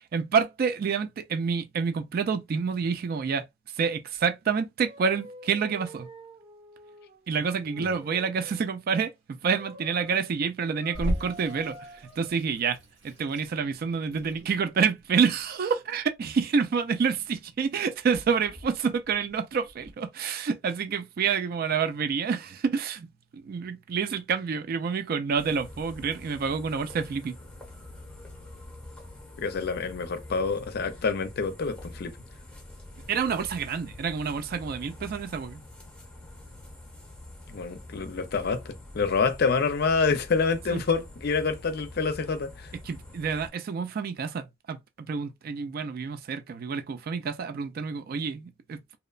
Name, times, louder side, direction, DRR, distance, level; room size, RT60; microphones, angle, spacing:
voice 1, 0.0-3.4 3.7-6.1 7.3-12.8 13.0-27.4 33.1-35.6 40.7-40.8 42.8-48.8, right 6 dB, 50° right, 0.3 m, -28 dB
sound 1, 4.8-8.7 9.6-10.3 10.8-12.3, right 1 dB, 30° right, 1.0 m, -47 dB
Water tap faucet / Sink (filling or washing), 10.9-19.9, equal, 65° right, 1.1 m, -39 dB
sound 2, 25.4-43.5, left 1 dB, 5° left, 0.9 m, -46 dB
voice 2, 29.4-32.1 37.5-42.7, left 4 dB, 55° left, 0.5 m, -27 dB
2.8 x 2.1 x 2.3 m
head